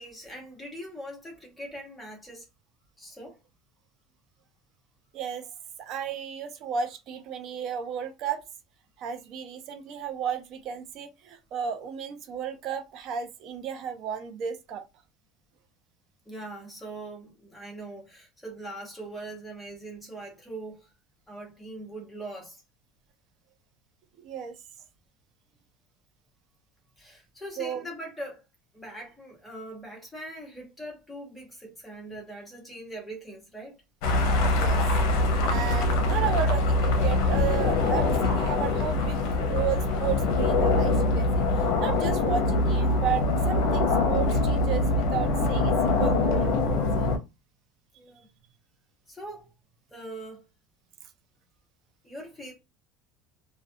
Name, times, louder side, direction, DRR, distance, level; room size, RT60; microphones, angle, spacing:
voice 1, 0.0-2.4 3.0-3.4 16.2-20.9 21.3-22.6 27.0-28.4 28.7-33.8 48.0-48.3 49.1-49.5 49.9-50.4 52.0-52.5, right 1 dB, 5° left, 0.9 m, -41 dB
voice 2, 5.1-5.5 5.8-8.4 9.0-14.8 24.2-24.6 27.6-27.9 34.6-34.8 35.5-41.4 41.8-47.1, right 8 dB, 45° right, 0.5 m, -33 dB
sound 1, 34.0-47.2, left 2 dB, 65° left, 0.6 m, -24 dB
2.4 x 2.2 x 2.6 m
cardioid pair, 160°, 0 cm